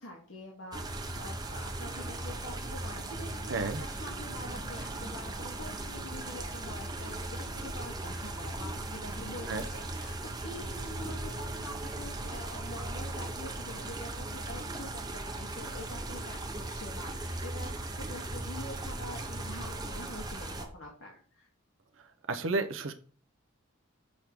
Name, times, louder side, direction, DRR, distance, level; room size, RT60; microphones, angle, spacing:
voice 1, 0.0-21.5, left 1 dB, 75° left, -2 dB, 1.3 m, -46 dB
sound 1, 0.7-20.7, right 2 dB, 20° right, 0.7 m, -38 dB
voice 2, 3.5-3.8 9.5-9.6 22.3-22.9, right 3 dB, 75° right, 8 dB, 0.7 m, -31 dB
6.4 x 3.5 x 6.0 m, 0.42 s
head